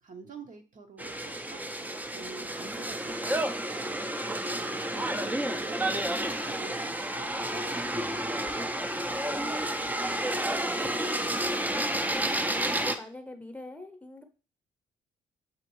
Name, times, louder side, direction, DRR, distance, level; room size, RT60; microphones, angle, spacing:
voice 1, 0.0-4.0 4.9-5.3 5.6-10.2, right 4 dB, 45° right, 3 dB, 0.8 m, -49 dB
sound 1, 1.0-13.0, right 1 dB, 10° right, 0.5 m, -31 dB
voice 2, 11.1-11.7 12.5-14.2, left 2 dB, 10° left, 6 dB, 0.9 m, -44 dB
7.1 x 2.5 x 3.0 m, 0.36 s
hypercardioid pair, 50°, 18 cm